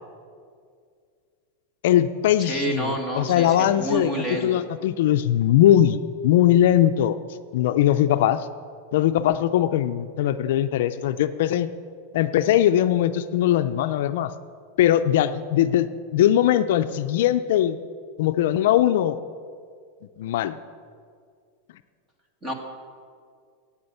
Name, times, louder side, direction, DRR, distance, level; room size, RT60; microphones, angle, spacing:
voice 1, 1.8-4.1 4.4-7.2 7.5-8.5 8.9-11.7 12.1-14.3 14.8-17.8 18.2-19.2 20.2-20.6, left 11 dB, 65° left, 11 dB, 0.4 m, -20 dB
voice 2, 2.4-4.6 22.4-22.5, right 1 dB, 15° right, 3 dB, 1.3 m, -29 dB
9.6 x 8.8 x 7.8 m, 2.2 s
supercardioid pair, 170°, 0 cm